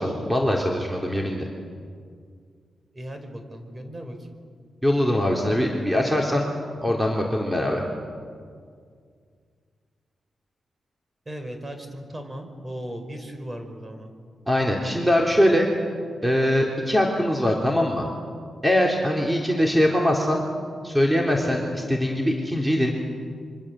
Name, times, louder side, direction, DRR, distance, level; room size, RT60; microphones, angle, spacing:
voice 1, 0.0-1.5 4.8-6.5 6.8-7.8 14.5-15.7 16.2-18.1 18.6-20.4 20.8-22.9, equal, 10° right, 0 dB, 3.7 m, -22 dB
voice 2, 2.9-4.2 11.3-14.1, equal, 25° right, 6 dB, 5.1 m, -37 dB
27.0 x 25.0 x 7.8 m, 2.1 s
cardioid pair, 65°, 0 cm